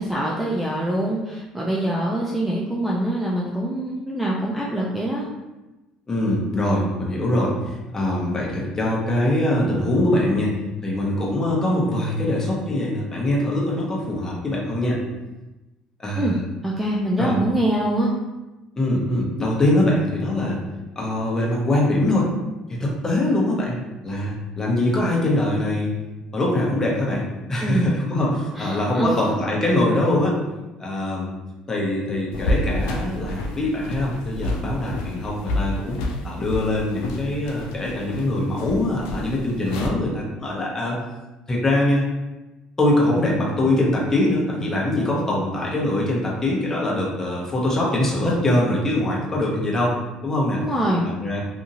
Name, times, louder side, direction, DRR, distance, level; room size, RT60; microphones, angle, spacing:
voice 1, 0.0-5.3 16.1-16.4 16.6-18.1 27.6-28.0 28.6-29.2 50.6-51.0, right 1 dB, 5° right, -4 dB, 0.5 m, -24 dB
voice 2, 6.1-10.6 10.8-15.0 16.0-16.4 17.2-17.3 18.8-20.6 21.0-22.3 22.7-23.8 24.0-26.0 26.3-30.4 30.8-31.3 31.7-36.0 36.2-41.0 41.5-42.0 42.8-50.0 50.2-50.6 51.0-51.4, left 1 dB, 25° left, -4 dB, 1.0 m, -23 dB
sound 1, 32.3-39.9, left 1 dB, 90° left, 0.4 m, -29 dB
2.7 x 2.6 x 2.6 m, 1.1 s
supercardioid pair, 85°, 2 cm